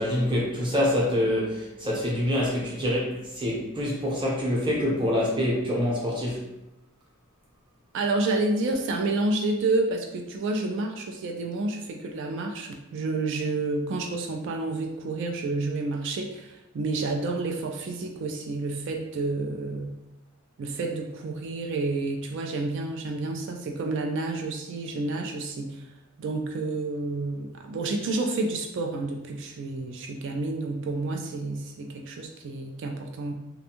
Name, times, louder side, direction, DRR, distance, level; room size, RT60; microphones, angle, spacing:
voice 1, 0.0-6.4, left 1 dB, 25° right, -4 dB, 0.8 m, -26 dB
voice 2, 7.9-20.0 20.6-25.9 26.2-33.3, right 2 dB, 60° right, 3 dB, 0.3 m, -29 dB
2.5 x 2.2 x 2.8 m, 0.92 s
head